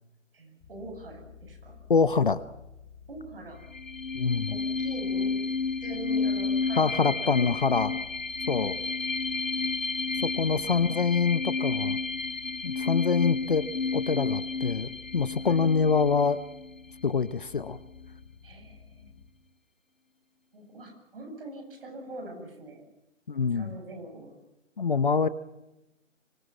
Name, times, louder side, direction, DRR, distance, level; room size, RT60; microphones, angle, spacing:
voice 1, 0.3-1.8 3.1-3.6 4.5-5.3 5.8-8.0 10.1-11.0 15.4-15.7 18.4-19.1 20.5-22.8 23.5-24.4, right 2 dB, 45° right, 4 dB, 7.9 m, -43 dB
sound 1, 0.6-19.3, left 6 dB, 15° left, 1.6 m, -52 dB
voice 2, 1.9-2.4 4.1-4.6 6.8-8.0 8.5-8.8 10.2-12.0 12.6-13.7 13.9-16.4 17.0-17.8 23.3-23.7 24.8-25.3, left 5 dB, 40° left, 16 dB, 0.8 m, -25 dB
sound 2, 3.6-17.0, left 4 dB, 85° left, 1.1 m, -31 dB
25.5 x 22.0 x 7.4 m, 0.93 s
figure-of-eight pair, 150°, 39 cm